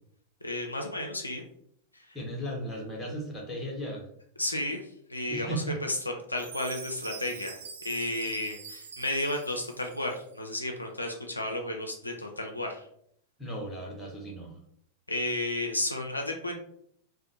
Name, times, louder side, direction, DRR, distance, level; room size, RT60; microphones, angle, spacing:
voice 1, 0.4-1.4 1.9-2.2 4.4-12.9 15.1-16.6, left 1 dB, 85° left, 2 dB, 0.3 m, -33 dB
voice 2, 2.1-4.0 5.3-5.8 13.4-14.5, right 1 dB, 15° left, -2 dB, 0.8 m, -36 dB
Chime, 6.4-10.4, right 5 dB, 65° right, 0.4 m, -45 dB
2.5 x 2.0 x 2.7 m, 0.67 s
figure-of-eight pair, 90°, 0 cm